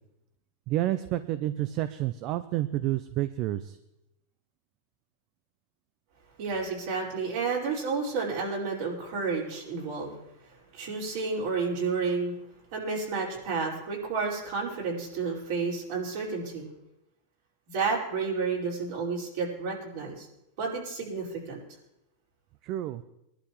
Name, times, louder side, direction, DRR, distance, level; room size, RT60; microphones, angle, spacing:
voice 1, 0.7-3.8 22.6-23.0, right 14 dB, 45° right, 13 dB, 0.5 m, -29 dB
voice 2, 6.4-10.2 10.7-12.3 12.7-16.7 17.7-20.3 20.6-21.6, right 4 dB, 60° right, -3 dB, 4.8 m, -31 dB
21.0 x 11.5 x 3.2 m, 0.85 s
supercardioid pair, 150°, 0 cm